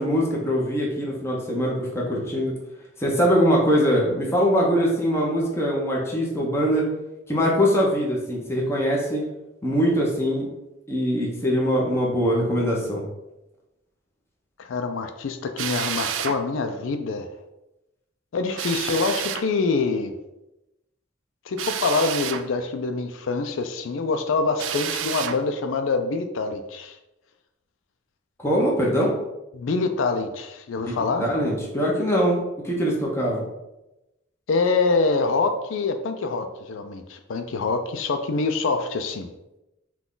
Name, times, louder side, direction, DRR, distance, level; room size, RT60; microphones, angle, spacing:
voice 1, 0.0-2.6 3.0-6.9 7.3-9.3 9.6-10.5 10.9-13.0 28.4-29.1 31.2-33.5, equal, 15° left, -3 dB, 0.8 m, -22 dB
voice 2, 14.6-17.3 18.3-20.1 21.5-27.0 29.5-31.3 34.5-39.3, left 4 dB, 90° left, 6 dB, 0.4 m, -25 dB
Drill, 15.6-16.4 18.6-19.5 21.6-22.5 24.6-25.4, right 9 dB, 80° right, 0.4 m, -29 dB
5.9 x 2.3 x 3.8 m, 0.94 s
head